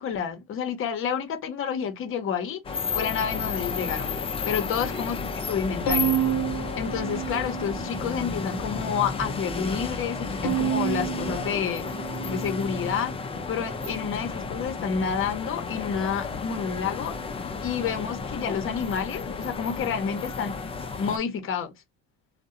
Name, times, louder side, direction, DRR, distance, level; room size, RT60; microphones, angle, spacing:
voice 1, 0.0-4.1 4.5-5.2 5.5-6.2 6.8-11.9 12.3-13.1 13.5-17.1 17.6-20.6 21.0-21.7, left 7 dB, 40° left, 0.7 m, -29 dB
sound 1, 2.6-21.2, left 5 dB, 20° left, 0.3 m, -33 dB
sound 2, 5.5-11.5, right 2 dB, 25° right, 0.7 m, -41 dB
Bowed string instrument, 5.9-8.2 8.7-9.5 10.4-13.0, right 8 dB, 80° left, 0.6 m, -30 dB
2.6 x 2.1 x 2.4 m
supercardioid pair, 95°, 34 cm